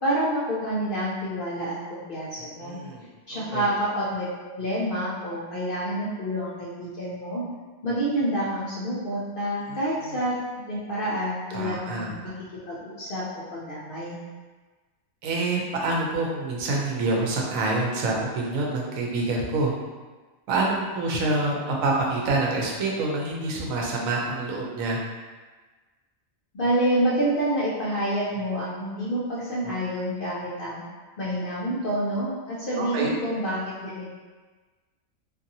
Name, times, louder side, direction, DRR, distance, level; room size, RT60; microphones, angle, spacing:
voice 1, 0.0-2.8 3.3-7.5 7.8-10.3 10.7-12.1 12.7-14.2 26.5-30.8 31.2-34.1, right 1 dB, 60° left, -8 dB, 0.5 m, -28 dB
voice 2, 2.4-3.1 3.3-3.7 9.7-10.2 11.5-12.1 15.2-19.7 20.5-25.0 32.8-33.1, right 2 dB, 85° right, -2 dB, 1.0 m, -27 dB
2.6 x 2.5 x 2.6 m, 1.3 s
omnidirectional pair, 1.4 m